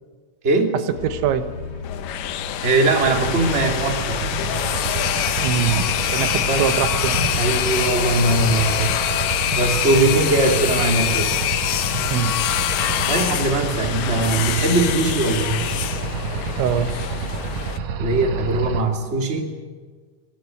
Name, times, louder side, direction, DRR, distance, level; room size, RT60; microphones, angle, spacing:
voice 1, 0.4-0.8 2.6-4.2 6.4-6.7 7.1-8.9 9.4-11.3 11.8-12.0 13.0-15.6 18.0-19.5, right 2 dB, 20° right, 2 dB, 2.3 m, -21 dB
sound 1, 0.9-17.6, left 3 dB, 45° left, 1.8 m, -39 dB
voice 2, 1.0-1.5 5.4-7.2 12.1-12.3 16.6-16.9, right 8 dB, 80° right, 10 dB, 3.3 m, -23 dB
sound 2, 1.8-17.8, left 12 dB, 70° left, 2.5 m, -25 dB
sound 3, 3.0-18.8, right 4 dB, 65° right, 1.8 m, -28 dB
25.5 x 18.5 x 7.9 m, 1.5 s
omnidirectional pair, 5.3 m